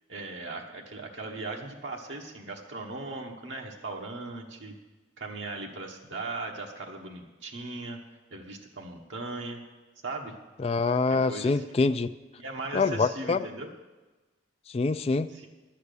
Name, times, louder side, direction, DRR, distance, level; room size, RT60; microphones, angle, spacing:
voice 1, 0.1-4.7 5.2-8.0 8.3-9.6 10.0-10.3 11.1-11.6 12.4-13.7 15.3-15.5, right 3 dB, 80° right, 1 dB, 1.2 m, -38 dB
voice 2, 10.6-12.1 12.7-13.4 14.7-15.3, left 4 dB, 30° left, 10 dB, 0.3 m, -25 dB
11.0 x 8.3 x 6.7 m, 1.2 s
head